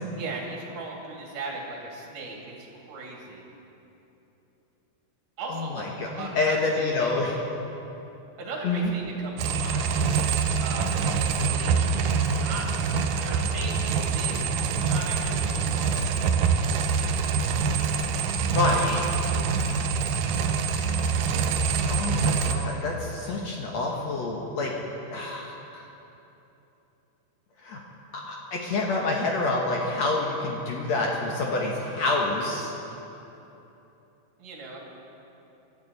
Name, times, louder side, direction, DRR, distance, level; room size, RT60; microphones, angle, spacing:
voice 1, 0.1-3.4 5.4-7.2 8.4-10.1 10.6-12.6 13.2-16.6 34.4-34.8, right 3 dB, 55° right, -2 dB, 3.9 m, -38 dB
voice 2, 5.5-7.3 8.6-8.9 18.5-19.0 20.4-20.6 21.9-24.7 25.1-25.9 27.6-27.8 28.1-32.7, left 2 dB, 75° left, -1 dB, 1.6 m, -27 dB
sound 1, 9.4-22.5, right 5 dB, 85° right, 1.9 m, -25 dB
23.5 x 13.5 x 4.1 m, 3.0 s
omnidirectional pair, 4.9 m